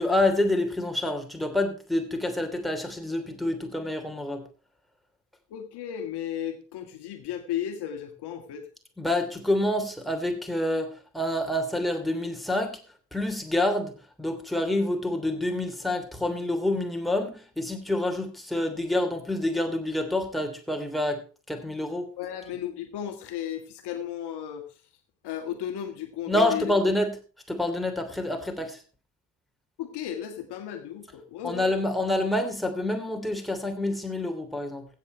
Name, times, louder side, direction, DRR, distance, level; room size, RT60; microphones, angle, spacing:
voice 1, 0.0-4.4 9.0-12.8 13.1-22.1 26.3-27.1 27.5-28.8 31.4-34.9, left 1 dB, ahead, 4 dB, 3.0 m, -27 dB
voice 2, 5.5-8.7 22.2-24.8 25.2-26.6 29.8-31.6, left 10 dB, 55° left, 7 dB, 1.7 m, -34 dB
15.5 x 7.6 x 4.5 m, 0.36 s
figure-of-eight pair, 45°, 47 cm